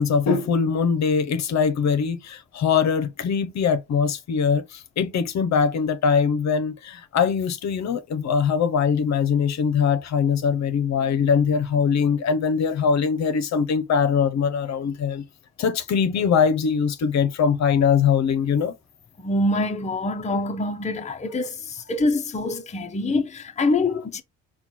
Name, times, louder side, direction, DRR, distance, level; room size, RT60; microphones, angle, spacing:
voice 1, 0.0-15.2 15.6-18.7, left 6 dB, 55° left, 0.8 m, -22 dB
voice 2, 19.2-24.2, left 2 dB, 20° left, 0.7 m, -25 dB
4.3 x 2.3 x 4.1 m
supercardioid pair, 70°, 32 cm